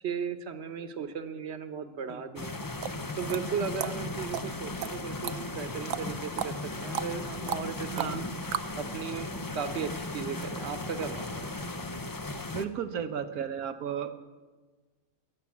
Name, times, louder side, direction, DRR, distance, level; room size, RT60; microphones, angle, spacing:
voice 1, 0.0-2.6 3.1-8.2 8.8-11.5, right 6 dB, 50° right, 10 dB, 1.2 m, -36 dB
sound 1, 2.4-12.7, left 2 dB, 25° left, 0.4 m, -37 dB
sound 2, 2.5-8.8, right 10 dB, 70° right, 1.0 m, -36 dB
voice 2, 7.9-8.2 12.5-14.1, right 7 dB, 90° right, 10 dB, 1.5 m, -34 dB
21.5 x 7.3 x 8.4 m, 1.3 s
omnidirectional pair, 1.5 m